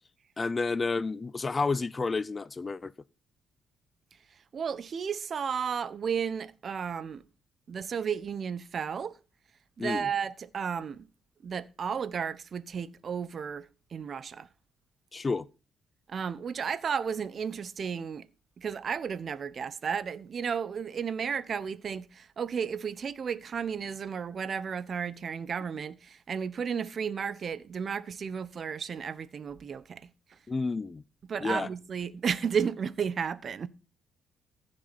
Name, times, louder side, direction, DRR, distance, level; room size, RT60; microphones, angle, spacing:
voice 1, 0.4-2.9 9.8-10.1 15.1-15.5 30.5-31.0 31.4-31.7, left 4 dB, 30° left, 0.7 m, -30 dB
voice 2, 4.5-7.2 7.7-9.2 9.8-11.1 11.4-14.5 16.1-18.3 18.6-30.1 31.3-33.7, right 7 dB, 50° right, 0.9 m, -33 dB
15.0 x 6.5 x 4.2 m
cardioid pair, 90°, 0 cm